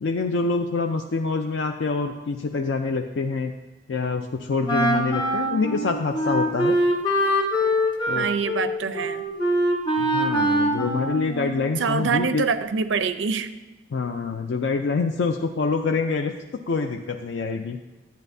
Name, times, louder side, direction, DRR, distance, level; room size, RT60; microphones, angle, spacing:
voice 1, 0.0-3.5 3.9-6.8 8.1-8.3 10.0-12.4 13.9-16.3 16.7-17.8, left 4 dB, 70° left, 4 dB, 0.4 m, -26 dB
Wind instrument woodwind instrument, 4.7-11.9, equal, 25° left, 1.0 m, -23 dB
voice 2, 8.1-9.2 11.8-13.5, right 5 dB, 90° right, 11 dB, 0.5 m, -25 dB
11.0 x 9.0 x 2.7 m, 1.1 s
head